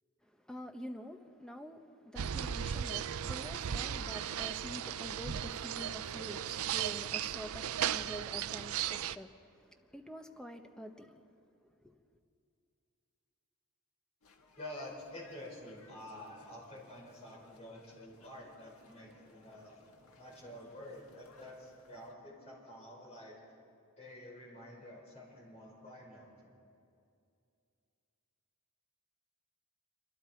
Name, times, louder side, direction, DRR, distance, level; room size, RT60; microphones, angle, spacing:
voice 1, 0.2-11.2 11.6-12.0, equal, 5° left, 1.1 m, -47 dB
sound 1, 2.2-9.2, right 9 dB, 80° right, 0.5 m, -36 dB
sound 2, 14.2-22.1, left 3 dB, 85° left, 1.6 m, -63 dB
voice 2, 14.6-23.5 24.0-26.5, left 1 dB, 30° left, 5.5 m, -49 dB
27.0 x 25.0 x 4.6 m
head